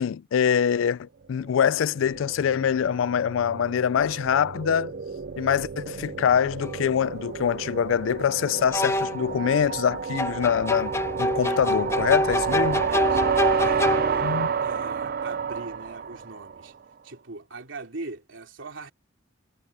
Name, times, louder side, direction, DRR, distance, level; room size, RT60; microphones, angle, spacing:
voice 1, 0.0-4.9 5.4-12.8 14.2-14.5, left 8 dB, 80° left, 0.3 m, -24 dB
sound 1, 1.5-16.7, right 6 dB, 50° right, 0.5 m, -30 dB
sound 2, 6.6-6.7 8.7-9.3 10.2-14.4, left 1 dB, 15° left, 0.7 m, -26 dB
voice 2, 12.5-13.2 13.6-14.3 14.6-16.7 17.0-18.9, right 3 dB, 75° right, 3.0 m, -40 dB
head